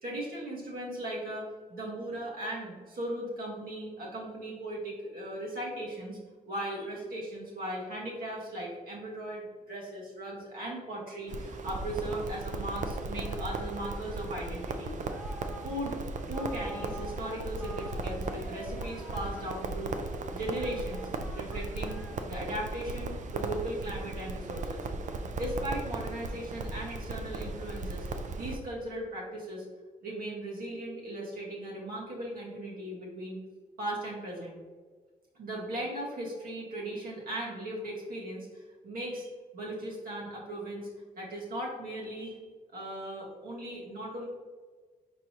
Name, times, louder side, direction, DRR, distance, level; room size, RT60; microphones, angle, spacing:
voice 1, 0.0-6.2 6.5-14.9 15.3-15.4 15.6-16.0 16.3-19.9 20.3-22.0 22.3-24.9 25.4-28.1 28.3-29.6 30.0-33.4 33.8-34.6 35.3-40.9 41.2-42.4 42.7-44.2, right 1 dB, 80° right, -4 dB, 1.5 m, -38 dB
Crackle, 11.3-28.6, right 3 dB, 55° right, 0.5 m, -37 dB
Singing, 11.7-22.7, equal, ahead, 0.7 m, -49 dB
4.5 x 3.8 x 2.9 m, 1.5 s
cardioid pair, 75°, 15 cm